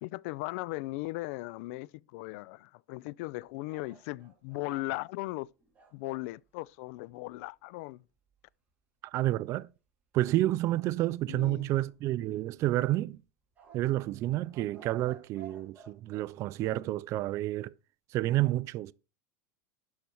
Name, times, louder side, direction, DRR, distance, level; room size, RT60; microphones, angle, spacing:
voice 1, 0.0-5.5 5.9-8.0 11.3-11.7, left 21 dB, 60° left, 0.4 m, -38 dB
sound 1, 3.7-6.3 11.7-12.5 13.6-16.3, right 6 dB, 20° right, 3.1 m, -55 dB
voice 2, 9.0-9.7 10.1-13.2 13.7-17.7 18.1-18.9, right 15 dB, 35° right, 0.4 m, -30 dB
12.0 x 4.4 x 6.3 m
supercardioid pair, 145°, 8 cm